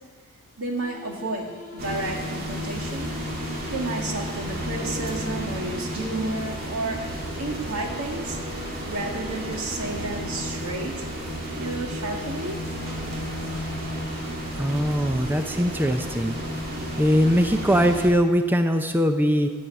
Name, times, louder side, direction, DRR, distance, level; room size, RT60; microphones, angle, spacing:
voice 1, 0.6-1.5 1.7-3.1 3.7-7.0 7.4-11.1 11.5-12.6, right 2 dB, 90° right, 1 dB, 2.0 m, -31 dB
sound 1, 0.8-6.7, left 1 dB, 40° left, 3.4 m, -44 dB
sound 2, 1.8-18.1, equal, 45° right, 2.2 m, -32 dB
voice 2, 14.5-16.4 17.0-19.5, equal, 10° right, 7 dB, 0.5 m, -21 dB
14.0 x 5.6 x 9.0 m, 1.5 s
head